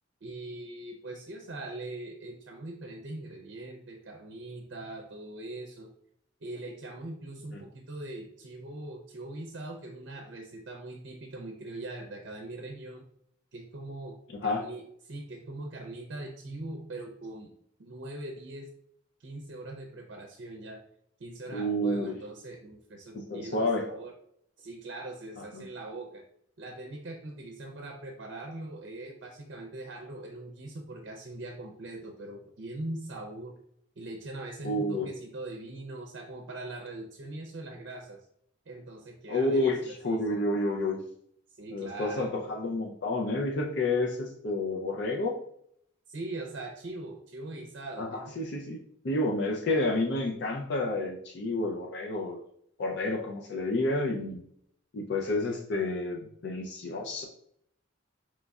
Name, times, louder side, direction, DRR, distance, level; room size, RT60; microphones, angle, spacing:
voice 1, 0.2-5.9 6.4-13.0 13.5-14.2 14.4-17.5 17.8-18.7 19.2-20.8 21.2-24.1 24.6-26.2 26.6-33.5 34.0-38.3 38.7-40.5 41.5-42.3 46.1-48.3, right 2 dB, 65° right, 2 dB, 0.5 m, -41 dB
voice 2, 21.5-22.1 23.1-23.9 25.5-25.6 34.6-35.1 39.3-41.0 41.7-45.4 48.0-52.4 52.8-54.4 54.9-57.2, left 2 dB, 60° left, 0 dB, 0.4 m, -30 dB
5.2 x 3.1 x 2.3 m, 0.69 s
head